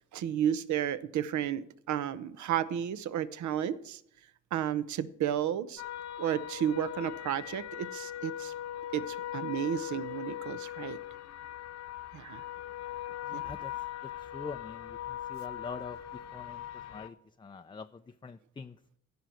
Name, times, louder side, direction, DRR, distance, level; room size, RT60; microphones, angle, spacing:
voice 1, 0.1-4.0 4.5-5.8 6.2-8.5 8.9-11.0 12.1-12.4 13.3-13.4, right 10 dB, 70° right, 15 dB, 0.9 m, -32 dB
sound 1, 5.8-17.1, left 12 dB, 60° left, 1.0 m, -40 dB
voice 2, 13.2-13.7 14.0-18.8, left 5 dB, 15° left, 8 dB, 0.4 m, -45 dB
14.5 x 5.6 x 7.6 m, 0.69 s
cardioid pair, 90°, 30 cm